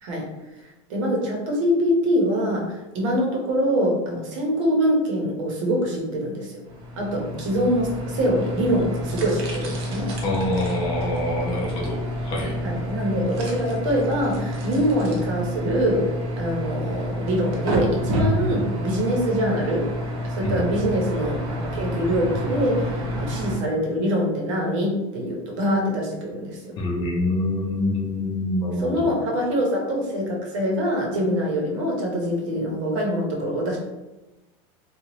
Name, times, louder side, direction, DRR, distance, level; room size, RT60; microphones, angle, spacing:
voice 1, 0.9-6.6 7.0-10.1 12.6-16.0 16.4-19.9 20.2-26.8 28.7-33.8, equal, 65° right, -1 dB, 0.9 m, -24 dB
sound 1, 6.7-23.6, equal, 30° right, 0.5 m, -29 dB
voice 2, 10.2-12.6 20.4-20.7 26.8-29.1, left 1 dB, 30° left, -2 dB, 0.5 m, -26 dB
2.8 x 2.3 x 3.0 m, 1.1 s
supercardioid pair, 175°, 17 cm